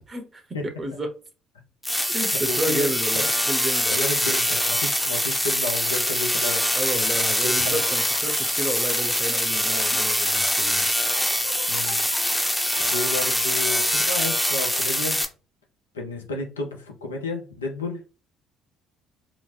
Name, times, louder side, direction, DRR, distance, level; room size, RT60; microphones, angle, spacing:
voice 1, 0.1-1.1 2.0-4.0 6.7-10.9, right 1 dB, 30° right, 0.7 m, -31 dB
sound 1, 1.8-15.2, equal, 5° left, 0.6 m, -23 dB
voice 2, 2.5-3.2 3.9-7.8 11.7-12.0 12.8-15.2 15.9-18.0, left 3 dB, 85° left, 0.6 m, -32 dB
sound 2, 3.7-3.9 4.4-13.7, right 2 dB, 70° right, 0.9 m, -43 dB
2.9 x 2.1 x 3.1 m
hypercardioid pair, 50°, 0 cm